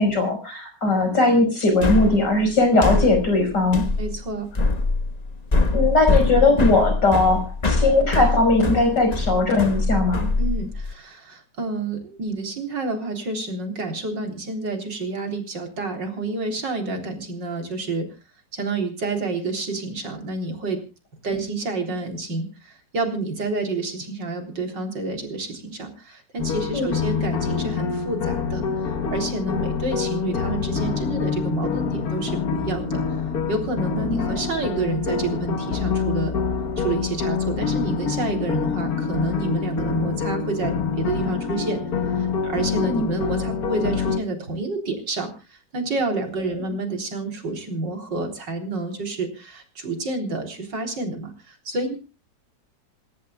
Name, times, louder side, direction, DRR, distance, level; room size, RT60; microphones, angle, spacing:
voice 1, 0.0-3.9 5.7-10.3 26.7-27.0 34.0-34.4 42.8-43.1, left 2 dB, 75° left, 6 dB, 6.2 m, -19 dB
sound 1, 1.8-10.9, left 3 dB, 25° left, 1.3 m, -23 dB
voice 2, 4.0-4.5 10.4-18.1 18.5-20.8 21.2-33.2 33.5-36.3 36.8-41.8 42.1-52.0, right 3 dB, 90° right, 4 dB, 4.3 m, -29 dB
sound 2, 26.4-44.2, left 6 dB, 60° left, 1.8 m, -26 dB
27.0 x 13.5 x 2.3 m, 0.31 s
omnidirectional pair, 1.9 m